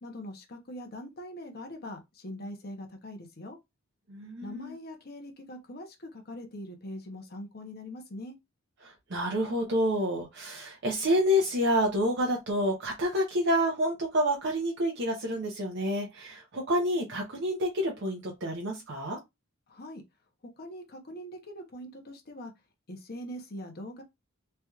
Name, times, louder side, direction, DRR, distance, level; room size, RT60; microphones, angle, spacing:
voice 1, 0.0-3.6 4.4-8.4 19.7-20.0 20.6-22.5 22.9-24.0, left 1 dB, 50° left, 0.8 m, -42 dB
voice 2, 4.1-4.7 8.8-19.2, equal, 60° right, 0.8 m, -28 dB
3.3 x 2.9 x 2.3 m
head